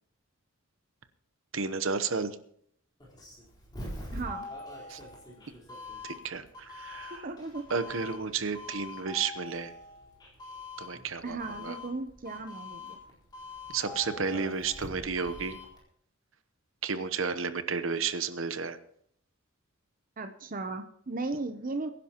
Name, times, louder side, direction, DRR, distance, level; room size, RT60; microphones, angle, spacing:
voice 1, 1.5-2.4 4.9-5.0 6.0-7.3 7.7-9.7 10.8-11.8 13.7-15.6 16.8-18.8, right 5 dB, 65° right, 11 dB, 0.9 m, -32 dB
Doorbell, 3.0-15.8, left 2 dB, 20° left, 4.2 m, -44 dB
voice 2, 4.1-4.5 7.1-7.9 11.2-13.0 20.2-21.9, right 3 dB, 40° right, 8 dB, 0.7 m, -36 dB
23.5 x 10.5 x 3.0 m, 0.67 s
head